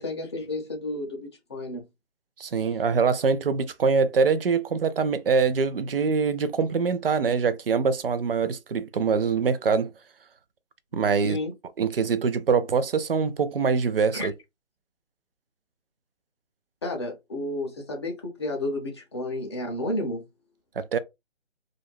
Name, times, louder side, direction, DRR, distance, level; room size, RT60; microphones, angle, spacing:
voice 1, 0.0-1.8 11.3-11.5 14.1-14.3 16.8-20.2, left 1 dB, 25° left, 0.6 m, -31 dB
voice 2, 2.4-9.9 10.9-11.4 11.8-14.3 20.8-21.0, right 5 dB, 55° right, 0.5 m, -24 dB
2.5 x 2.1 x 3.2 m
figure-of-eight pair, 150°, 34 cm